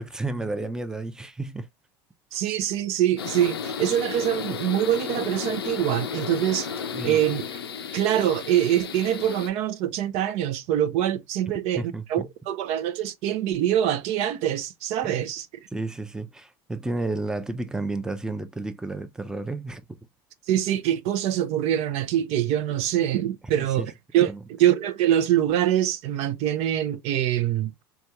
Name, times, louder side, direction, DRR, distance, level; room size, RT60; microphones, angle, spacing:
voice 1, 0.0-1.7 2.3-2.4 6.9-7.2 11.8-12.3 15.0-15.3 15.7-20.0 23.8-23.9 24.3-24.4, right 2 dB, 5° right, 0.5 m, -32 dB
voice 2, 2.3-7.6 7.9-15.5 20.5-27.7, right 11 dB, 60° right, 0.5 m, -24 dB
sound 1, 3.2-9.5, left 7 dB, 90° left, 0.4 m, -33 dB
3.3 x 2.3 x 2.9 m
hypercardioid pair, 75°, 13 cm